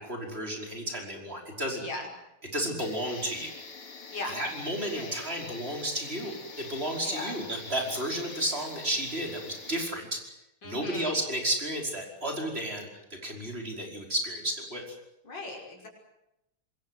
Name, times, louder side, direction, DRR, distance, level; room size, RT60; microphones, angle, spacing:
voice 1, 0.0-1.8 2.5-3.5 4.3-10.2 10.6-12.9 13.2-14.9, right 1 dB, 25° right, 2 dB, 5.5 m, -32 dB
sound 1, 2.8-9.9, left 4 dB, 90° left, 3.9 m, -45 dB
voice 2, 7.0-7.4 10.6-11.2 15.2-15.9, left 2 dB, 55° left, 0 dB, 6.7 m, -38 dB
27.0 x 21.5 x 8.0 m, 0.88 s
omnidirectional pair, 2.4 m